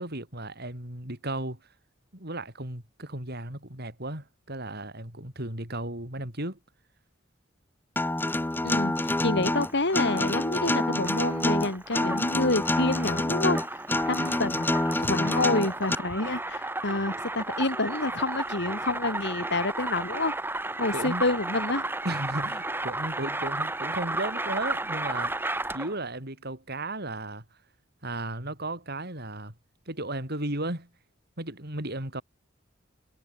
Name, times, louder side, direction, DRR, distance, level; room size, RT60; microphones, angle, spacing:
voice 1, 0.0-1.6 2.1-6.6 15.2-15.3 20.9-21.2 22.0-27.4 28.0-29.5 29.9-30.9 31.4-32.2, right 2 dB, 55° right, 7.7 m, -35 dB
Acoustic guitar, 8.0-15.9, left 1 dB, 10° left, 0.7 m, -27 dB
voice 2, 8.6-13.6 14.1-14.7 15.0-20.4 20.8-21.9, left 2 dB, 60° left, 3.4 m, -28 dB
sound 1, 9.4-26.0, right 2 dB, 10° right, 2.7 m, -34 dB
head